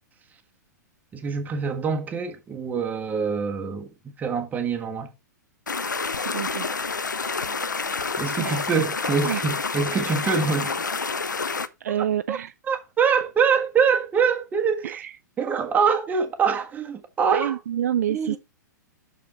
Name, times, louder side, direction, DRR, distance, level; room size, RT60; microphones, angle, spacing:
voice 1, 1.1-5.1 8.2-10.7 11.9-12.0 12.3-12.4 12.7-15.0 15.4-17.6 18.1-18.4, right 6 dB, 15° right, 1.3 m, -24 dB
sound 1, 5.7-11.7, left 4 dB, 80° left, 0.6 m, -28 dB
voice 2, 6.3-6.7 8.4-8.6 9.2-9.4 11.8-12.5 14.8-15.1 17.3-18.4, right 10 dB, 60° right, 0.4 m, -27 dB
6.4 x 5.5 x 4.2 m
figure-of-eight pair, 105°, 10 cm